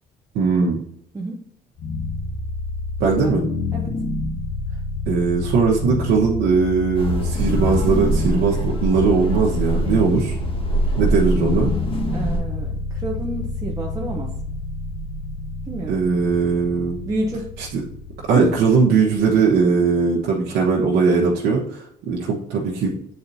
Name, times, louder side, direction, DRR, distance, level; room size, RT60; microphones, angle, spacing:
voice 1, 0.3-0.8 3.0-3.4 5.1-10.4 11.0-11.7 15.9-17.0 17.6-17.8 18.3-23.0, right 5 dB, 85° right, -4 dB, 1.1 m, -19 dB
sound 1, 1.8-20.8, left 3 dB, 85° left, 1.3 m, -29 dB
sound 2, 6.9-12.4, equal, 30° left, 1.5 m, -24 dB
voice 2, 12.1-14.3 15.7-16.0 17.1-17.5 18.3-18.5, right 1 dB, 20° right, -1 dB, 0.8 m, -29 dB
8.5 x 4.3 x 2.7 m, 0.70 s
cardioid pair, 110°, 17 cm